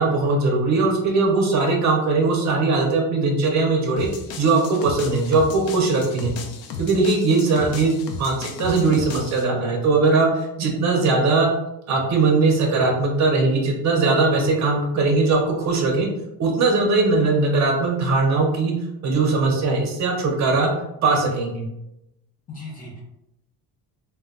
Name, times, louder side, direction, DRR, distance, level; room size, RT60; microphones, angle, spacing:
voice 1, 0.0-4.1 4.4-6.3 6.8-11.5 11.9-16.1 16.4-18.7 19.0-20.7 21.0-21.6, right 3 dB, 45° right, 1 dB, 0.5 m, -20 dB
sound 1, 4.0-9.4, left 4 dB, 65° left, 0.5 m, -35 dB
voice 2, 22.5-23.0, left 3 dB, 20° left, -5 dB, 0.6 m, -36 dB
2.2 x 2.1 x 3.6 m, 0.88 s
cardioid pair, 165°, 38 cm